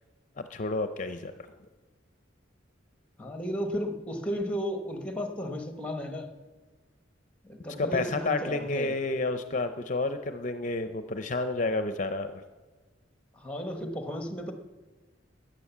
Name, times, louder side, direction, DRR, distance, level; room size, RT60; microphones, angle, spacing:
voice 1, 0.4-1.3 7.8-12.4, left 3 dB, 40° left, 9 dB, 0.5 m, -30 dB
voice 2, 3.2-6.3 7.4-8.9 13.4-14.5, equal, 5° left, 5 dB, 1.1 m, -34 dB
14.0 x 9.1 x 7.2 m, 1.3 s
head